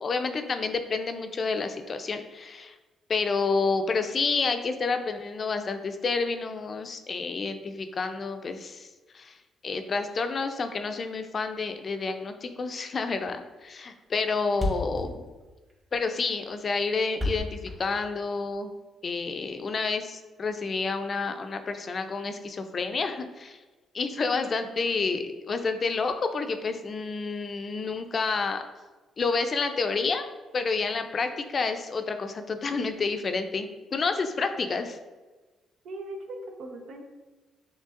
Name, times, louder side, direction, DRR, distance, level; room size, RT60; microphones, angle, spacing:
voice 1, 0.0-2.7 3.1-8.9 9.1-9.4 9.6-15.3 15.9-18.7 19.0-23.6 23.9-28.6 29.2-35.0, left 4 dB, 40° left, 7 dB, 0.5 m, -29 dB
Thump thud, 13.6-13.7 14.0-14.1 14.3-14.4 14.5-18.6, left 1 dB, 20° right, 1.5 m, -32 dB
voice 2, 35.8-37.0, right 1 dB, 75° right, 2 dB, 0.8 m, -39 dB
6.5 x 3.2 x 2.5 m, 1.2 s
cardioid pair, 90°, 0 cm